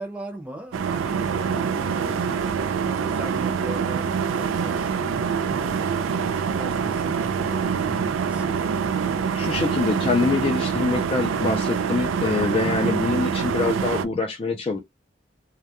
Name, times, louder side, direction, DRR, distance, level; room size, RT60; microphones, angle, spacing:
voice 1, 0.0-8.8 12.6-13.0, right 1 dB, 5° right, 0.6 m, -39 dB
sound 1, 0.7-14.0, right 6 dB, 80° right, 0.3 m, -25 dB
voice 2, 9.3-14.8, left 3 dB, 30° left, 0.3 m, -24 dB
2.3 x 2.1 x 2.8 m
head